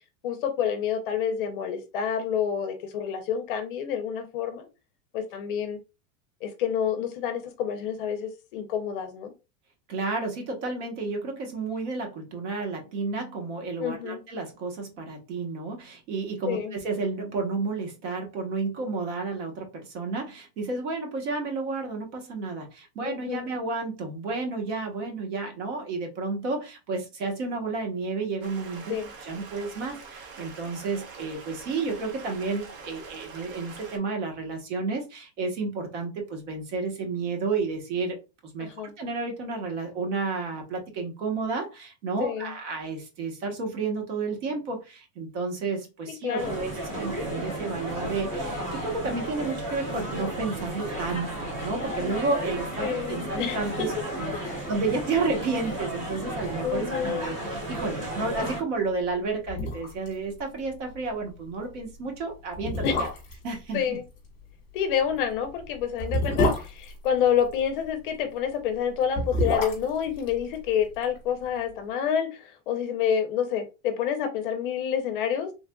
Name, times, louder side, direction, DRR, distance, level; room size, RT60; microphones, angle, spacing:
voice 1, 0.2-4.7 5.1-5.8 6.4-9.3 13.8-14.2 16.5-16.7 23.0-23.5 28.9-29.1 38.6-38.9 42.2-42.5 46.2-46.6 52.8-53.9 54.3-54.6 56.6-57.3 62.8-63.0 63.7-64.0 64.7-75.5, left 8 dB, 45° left, 7 dB, 0.5 m, -28 dB
voice 2, 9.9-29.0 29.2-38.2 38.4-38.7 39.0-63.1 63.4-64.0, right 3 dB, 60° right, 2 dB, 1.1 m, -31 dB
Stream, 28.4-34.0, right 5 dB, 80° right, 1.0 m, -44 dB
sound 1, 46.4-58.6, right 1 dB, 20° right, 0.4 m, -33 dB
sound 2, 59.1-59.2 59.5-60.1 60.4-60.5 60.9-61.1 61.8-61.9 62.5-63.5 65.0-67.7 68.9-71.2 71.4-71.5, left 1 dB, 20° left, 1.0 m, -28 dB
3.3 x 2.4 x 2.2 m, 0.28 s
supercardioid pair, 180°, 40 cm